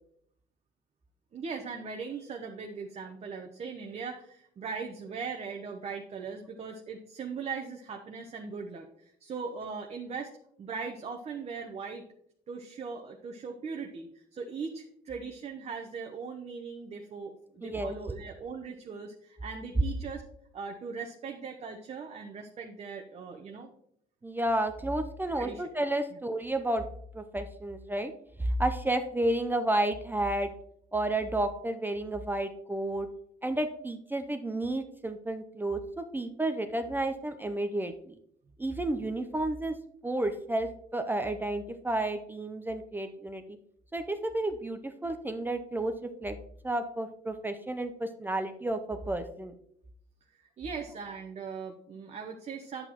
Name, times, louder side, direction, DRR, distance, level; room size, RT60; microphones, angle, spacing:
voice 1, 1.3-10.3 10.6-12.0 12.5-20.2 20.5-23.7 25.4-25.6 50.6-52.9, right 5 dB, 40° right, 3 dB, 0.8 m, -39 dB
voice 2, 17.6-18.0 24.2-26.8 27.1-28.1 28.4-30.5 30.9-33.1 33.4-38.2 38.6-39.8 40.0-43.4 43.9-46.4 46.6-49.5, right 1 dB, 10° right, 7 dB, 0.6 m, -31 dB
9.1 x 7.9 x 3.0 m, 0.70 s
cardioid pair, 110°, 17 cm